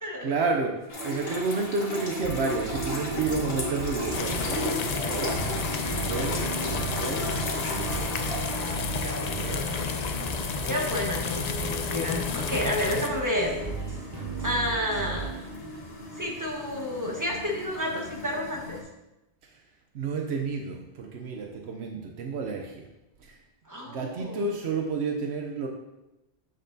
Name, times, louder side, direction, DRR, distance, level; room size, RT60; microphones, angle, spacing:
voice 1, 0.2-7.8 19.4-19.6 19.9-22.8 23.2-23.4 23.8-25.7, right 4 dB, 85° right, 2 dB, 1.0 m, -31 dB
sound 1, 0.9-18.8, left 1 dB, 70° left, 1.6 m, -37 dB
sound 2, 2.2-15.4, right 4 dB, 40° right, 1.4 m, -36 dB
sound 3, 4.1-13.1, left 6 dB, 50° left, 0.5 m, -32 dB
voice 2, 8.5-10.2 10.6-13.5 14.4-15.4 16.1-18.8 23.6-24.5, left 1 dB, 20° right, -1 dB, 1.3 m, -31 dB
7.7 x 7.3 x 2.7 m, 0.95 s
omnidirectional pair, 1.1 m